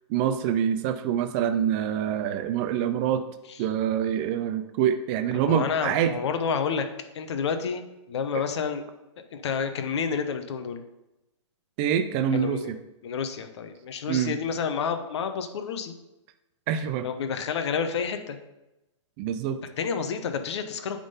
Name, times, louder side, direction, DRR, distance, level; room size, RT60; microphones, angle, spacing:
voice 1, 0.1-3.2 3.6-6.1 11.8-12.8 14.1-14.4 16.7-17.1 19.2-19.6, right 9 dB, 25° right, 8 dB, 0.3 m, -25 dB
voice 2, 5.4-6.9 7.1-8.8 9.3-10.8 12.3-12.7 13.0-15.9 17.0-18.4 19.8-21.0, left 6 dB, 60° left, 7 dB, 0.9 m, -29 dB
8.7 x 3.7 x 5.5 m, 0.96 s
hypercardioid pair, 160°, 16 cm